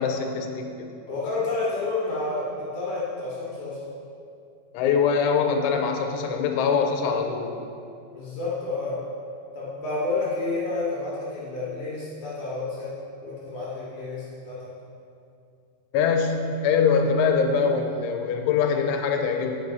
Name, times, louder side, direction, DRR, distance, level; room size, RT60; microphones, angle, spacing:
voice 1, 0.0-0.9 4.7-7.6 15.9-19.6, left 6 dB, 85° left, 3 dB, 3.1 m, -23 dB
voice 2, 1.1-3.9 8.1-9.0 9.5-12.9 13.2-14.7, left 3 dB, 65° left, -7 dB, 2.0 m, -30 dB
8.5 x 5.8 x 5.3 m, 2.5 s
omnidirectional pair, 5.5 m